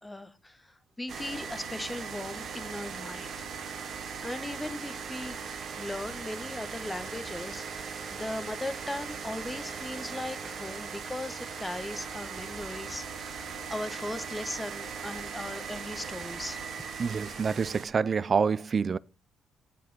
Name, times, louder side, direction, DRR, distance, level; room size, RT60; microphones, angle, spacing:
voice 1, 0.0-3.4 4.2-5.4 5.8-16.6, left 1 dB, 10° left, 1.0 m, -38 dB
sound 1, 1.1-17.9, right 6 dB, 60° right, 1.5 m, -39 dB
voice 2, 17.0-19.0, right 5 dB, 40° right, 0.4 m, -27 dB
8.1 x 5.2 x 5.2 m
cardioid pair, 90°, 0 cm